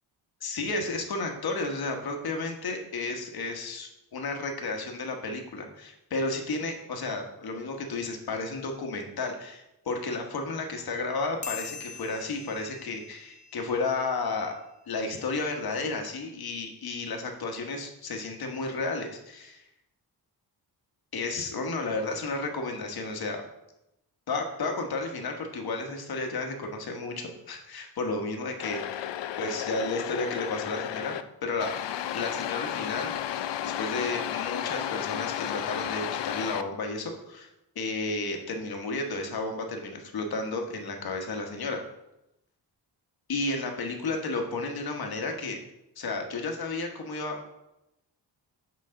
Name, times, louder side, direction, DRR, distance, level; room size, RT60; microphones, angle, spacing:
voice 1, 0.4-14.5 14.9-19.6 21.1-23.4 24.3-29.1 29.4-31.7 32.1-37.5 37.7-41.8 43.3-45.6 46.0-47.4, left 3 dB, 60° left, 3 dB, 1.2 m, -32 dB
sound 1, 11.4-14.3, left 6 dB, 20° left, 0.6 m, -43 dB
sound 2, 28.6-31.2 31.6-36.6, left 11 dB, 85° left, 0.5 m, -33 dB
7.8 x 5.2 x 3.7 m, 0.88 s
wide cardioid pair, 160°, 42 cm